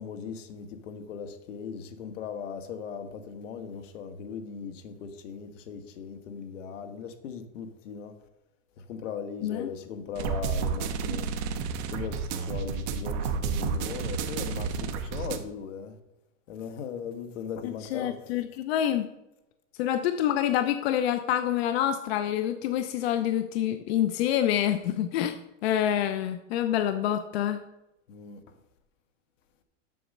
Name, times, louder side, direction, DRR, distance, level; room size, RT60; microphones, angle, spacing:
voice 1, 0.0-8.1 8.8-11.3 11.9-16.0 16.5-18.4 28.1-28.5, left 7 dB, 80° left, 1.3 m, -38 dB
sound 1, 10.2-15.4, right 6 dB, 35° right, 0.7 m, -31 dB
voice 2, 17.9-19.0 19.8-25.4 25.6-27.6, left 11 dB, 55° left, 0.6 m, -27 dB
7.8 x 6.2 x 6.5 m
supercardioid pair, 165°, 37 cm